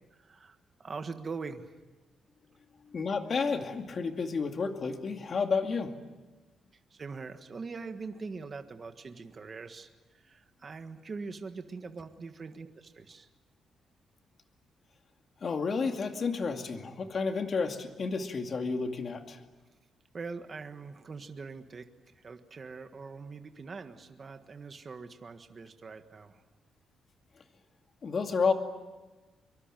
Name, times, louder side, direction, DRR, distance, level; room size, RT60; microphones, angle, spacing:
voice 1, 0.1-1.7 6.9-13.3 20.1-21.9 22.1-26.4, right 4 dB, 30° right, 7 dB, 1.5 m, -43 dB
voice 2, 2.9-5.9 15.4-19.4 28.0-28.5, left 5 dB, 40° left, 5 dB, 2.4 m, -31 dB
24.0 x 23.0 x 9.1 m, 1.2 s
cardioid pair, 140°, 0 cm